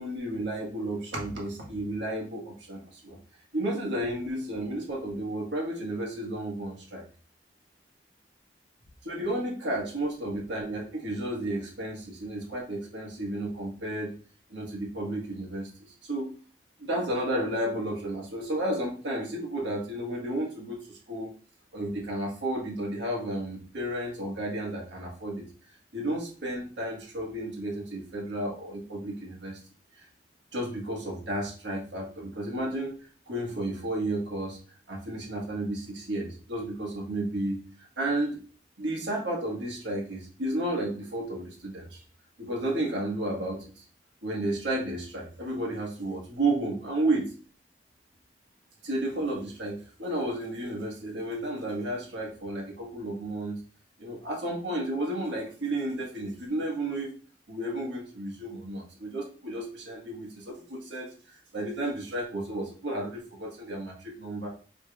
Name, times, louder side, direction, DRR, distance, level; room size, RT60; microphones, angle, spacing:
voice 1, 0.0-3.2 3.5-7.1 9.0-14.1 14.5-16.3 16.8-21.3 21.7-25.4 25.9-29.6 30.0-30.1 30.5-34.6 34.9-38.4 38.8-42.0 42.4-43.8 44.2-47.3 48.8-53.6 54.0-57.2 57.5-64.5, right 1 dB, 85° right, -2 dB, 1.4 m, -32 dB
4.9 x 3.3 x 2.3 m, 0.40 s
head